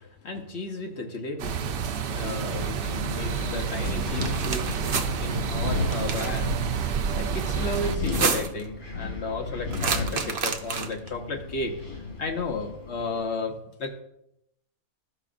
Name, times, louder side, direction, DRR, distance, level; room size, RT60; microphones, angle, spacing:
voice 1, 0.0-1.6 2.1-6.9 7.2-11.8 12.2-14.0, left 3 dB, 55° left, 3 dB, 1.0 m, -34 dB
sound 1, 1.4-8.0, right 7 dB, 80° right, 0.5 m, -29 dB
Wind, 1.7-13.2, left 3 dB, 80° left, 1.8 m, -35 dB
sound 2, 4.1-5.1 5.9-6.4 7.9-8.6 9.7-11.1, right 5 dB, 55° right, 0.8 m, -29 dB
13.0 x 4.9 x 2.5 m, 0.79 s
omnidirectional pair, 1.5 m